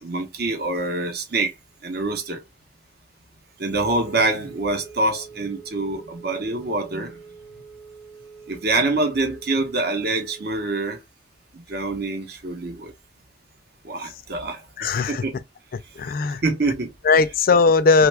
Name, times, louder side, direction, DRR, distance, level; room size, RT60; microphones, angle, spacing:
voice 1, 0.0-1.5 1.8-2.4 3.6-7.2 8.5-11.0 11.5-12.9 13.8-14.6 15.1-15.4 16.4-16.9, right 2 dB, 60° right, 0.9 m, -25 dB
Wind instrument woodwind instrument, 3.6-10.7, right 5 dB, 20° right, 0.7 m, -44 dB
voice 2, 14.8-15.3 15.7-16.4 17.0-18.1, left 4 dB, 50° left, 0.4 m, -18 dB
3.1 x 2.3 x 3.3 m
head